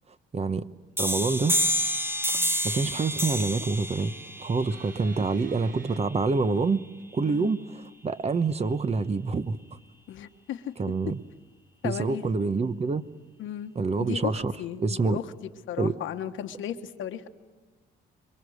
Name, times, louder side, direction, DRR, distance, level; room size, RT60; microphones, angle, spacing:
voice 1, 0.3-0.6 1.0-1.6 2.6-6.8 7.1-9.6 10.8-11.2 11.8-13.0 13.8-14.5 14.8-15.2 15.8-15.9, right 4 dB, 30° right, 1.0 m, -26 dB
sound 1, 1.0-6.4, equal, 10° right, 1.2 m, -29 dB
sound 2, 4.7-6.0 7.0-7.1, right 8 dB, 65° right, 1.2 m, -46 dB
voice 2, 10.1-10.7 11.8-12.2 13.4-13.7 14.0-15.3 15.7-17.3, left 10 dB, 80° left, 1.4 m, -35 dB
27.0 x 22.5 x 6.5 m
cardioid pair, 90°, 20 cm